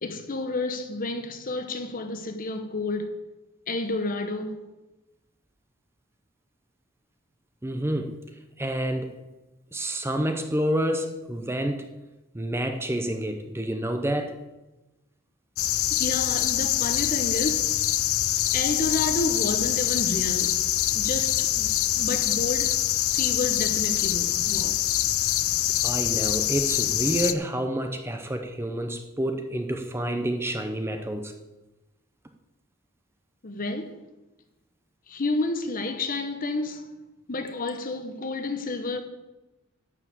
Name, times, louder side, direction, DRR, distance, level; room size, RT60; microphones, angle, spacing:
voice 1, 0.0-3.2 3.7-4.6 15.9-17.7 18.5-20.6 20.9-22.9 23.1-24.9 33.4-34.0 35.1-36.9 37.3-39.0, left 2 dB, 40° left, 0.9 m, -30 dB
voice 2, 7.6-8.2 8.6-9.1 9.7-11.9 12.3-14.3 25.8-31.3, right 1 dB, 10° right, 0.7 m, -28 dB
sound 1, 15.6-27.3, left 13 dB, 80° left, 0.5 m, -25 dB
11.5 x 4.8 x 8.1 m
head